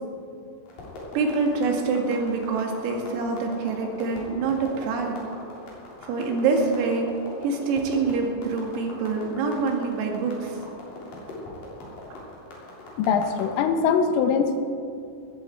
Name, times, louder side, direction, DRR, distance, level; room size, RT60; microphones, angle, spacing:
sound 1, 0.7-13.6, left 2 dB, 45° left, 4.7 m, -41 dB
voice 1, 1.2-5.2 6.1-7.2 7.4-10.6, right 4 dB, 85° right, 2 dB, 4.6 m, -25 dB
voice 2, 13.0-14.6, left 6 dB, 80° left, 7 dB, 3.4 m, -22 dB
18.5 x 15.0 x 4.5 m, 2.5 s
omnidirectional pair, 6.0 m